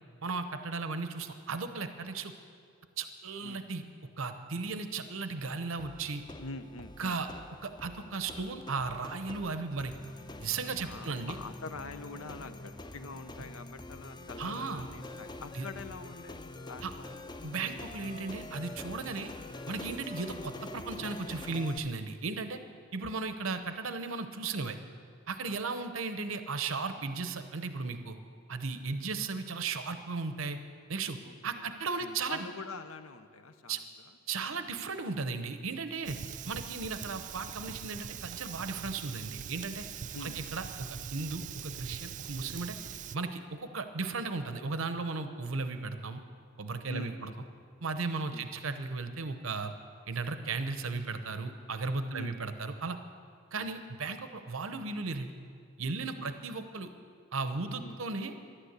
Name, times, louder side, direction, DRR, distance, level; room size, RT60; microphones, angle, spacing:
voice 1, 0.2-2.3 3.0-3.8 4.2-6.2 7.0-7.3 7.6-9.9 10.4-11.4 14.4-14.9 15.5-15.7 16.8-16.9 17.4-19.3 19.7-22.6 22.9-24.8 25.3-28.2 28.5-30.6 30.9-31.2 31.4-32.5 33.7-33.8 34.3-36.2 36.5-39.8 40.2-42.8 43.1-46.2 46.6-47.3 47.8-49.7 50.1-53.0 53.5-55.3 55.8-56.9 57.3-58.3, right 4 dB, 70° right, 9 dB, 0.8 m, -36 dB
sound 1, 5.8-21.8, left 2 dB, 20° left, 0.5 m, -46 dB
voice 2, 6.4-7.2 10.8-17.3 25.4-25.8 31.2-33.8 36.5-36.8 40.1-40.4 46.9-47.4 48.3-48.5 52.1-52.5 53.5-53.7 56.2-56.4 57.8-58.0, left 3 dB, 80° left, 9 dB, 0.9 m, -45 dB
Fire, 36.0-43.2, right 8 dB, 35° right, 0.3 m, -42 dB
13.0 x 11.5 x 8.1 m, 2.4 s
head